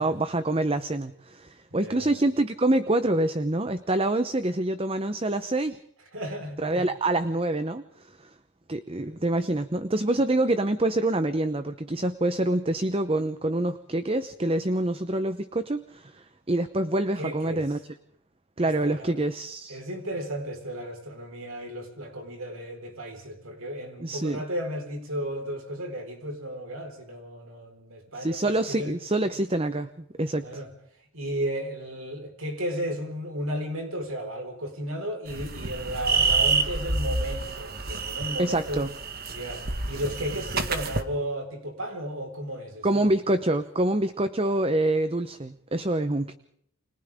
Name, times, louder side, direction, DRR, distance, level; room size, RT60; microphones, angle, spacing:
voice 1, 0.0-5.8 6.6-8.3 8.7-17.8 18.6-19.8 24.0-24.4 28.2-30.6 38.4-38.9 42.8-46.3, right 1 dB, 25° right, 11 dB, 0.8 m, -26 dB
voice 2, 1.7-2.1 6.1-6.9 9.0-9.1 17.2-17.6 18.6-19.1 19.7-28.9 30.4-30.7 31.1-38.9 39.3-43.0, equal, 70° right, 4 dB, 4.5 m, -34 dB
sound 1, 35.3-41.0, right 4 dB, 45° right, 1.9 m, -28 dB
29.5 x 26.0 x 3.6 m, 0.68 s
head